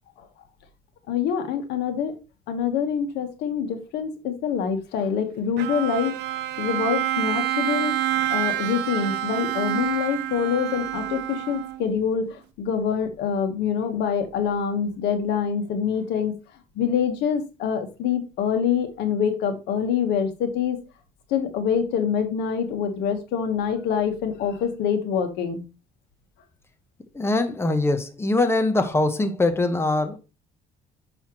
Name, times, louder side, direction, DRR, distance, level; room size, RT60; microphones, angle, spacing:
voice 1, 1.1-2.2 2.5-6.1 6.6-7.9 8.3-16.3 16.7-20.8 21.3-25.6, left 7 dB, 85° left, 1.3 m, -25 dB
Bowed string instrument, 5.6-12.0, right 13 dB, 80° right, 0.6 m, -27 dB
voice 2, 27.1-30.2, left 2 dB, 15° left, 0.9 m, -22 dB
6.3 x 5.6 x 3.0 m
cardioid pair, 110°, 17 cm